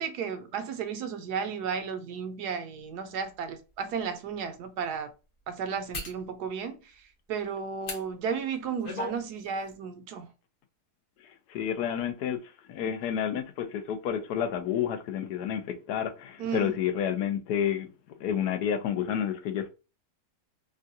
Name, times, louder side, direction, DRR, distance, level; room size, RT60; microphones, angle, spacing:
voice 1, 0.0-5.1 5.5-6.8 7.3-10.3 16.4-16.7, right 6 dB, 75° right, 1.2 m, -33 dB
sound 1, 3.1-3.2 3.8-4.0 5.9-6.2 7.8-8.0 8.5-9.2 9.5-9.7, left 2 dB, 40° left, 0.9 m, -36 dB
voice 2, 11.2-17.9 18.2-19.7, left 9 dB, 75° left, 1.1 m, -30 dB
3.6 x 2.3 x 2.6 m
omnidirectional pair, 1.8 m